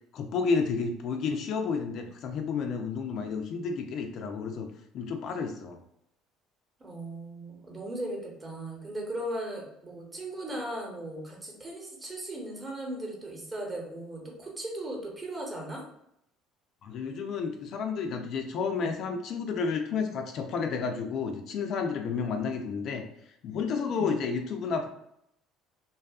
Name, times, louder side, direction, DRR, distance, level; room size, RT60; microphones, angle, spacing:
voice 1, 0.1-4.7 4.9-5.8 16.8-23.0 23.4-24.9, left 5 dB, 60° left, 5 dB, 0.3 m, -31 dB
voice 2, 6.8-15.8 23.8-24.1, right 1 dB, 25° right, -1 dB, 0.9 m, -37 dB
2.6 x 2.3 x 2.3 m, 0.76 s
supercardioid pair, 90°, 0 cm